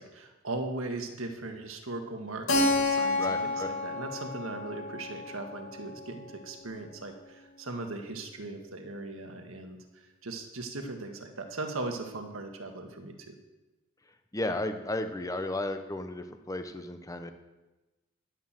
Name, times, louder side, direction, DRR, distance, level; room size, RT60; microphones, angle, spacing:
voice 1, 0.0-13.3, right 2 dB, 80° right, 4 dB, 1.7 m, -39 dB
Keyboard (musical), 2.5-7.0, left 2 dB, 75° left, 2.2 m, -31 dB
voice 2, 3.2-3.7 14.3-17.3, left 1 dB, 15° left, 8 dB, 1.0 m, -34 dB
11.0 x 11.0 x 7.6 m, 1.1 s
head